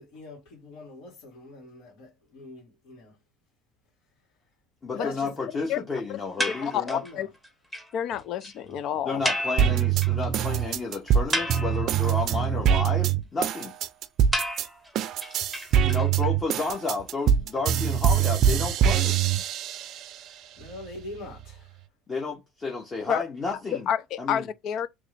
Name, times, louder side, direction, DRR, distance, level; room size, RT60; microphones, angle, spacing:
voice 1, 0.0-3.2 4.9-5.3 7.0-7.3 8.6-8.8 20.3-21.8, left 2 dB, 70° left, 2.3 m, -43 dB
voice 2, 4.8-7.0 9.0-13.7 15.8-19.2 22.1-23.9 24.2-24.5, left 3 dB, 20° left, 1.0 m, -31 dB
sound 1, 6.4-7.1 7.4-7.5 7.7-7.9 8.1-8.2 8.4-8.5 9.2-10.3 10.6-10.7 11.1-12.1 14.3-16.3, equal, 5° left, 1.0 m, -31 dB
voice 3, 6.6-7.3 7.9-9.2 23.1-23.2 23.9-24.9, left 9 dB, 50° left, 0.5 m, -29 dB
sound 2, 9.6-14.7 14.9-20.1 20.6-21.6, right 9 dB, 45° right, 0.5 m, -24 dB
3.5 x 3.0 x 3.3 m
cardioid pair, 140°, 0 cm